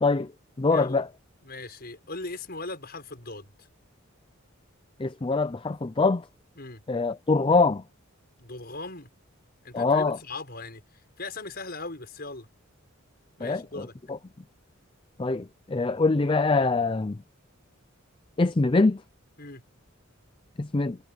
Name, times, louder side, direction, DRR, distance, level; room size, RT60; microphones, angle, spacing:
voice 1, 0.0-0.3 0.6-1.1 5.0-6.2 6.9-7.8 9.7-10.2 13.4-14.2 15.2-17.2 18.4-19.0 20.6-21.0, left 3 dB, 25° left, 0.5 m, -24 dB
voice 2, 0.7-1.0 1.4-3.5 6.6-6.8 8.4-9.1 9.6-10.8 11.2-12.5 13.4-13.9 19.4-19.6, left 3 dB, 50° left, 6.4 m, -39 dB
head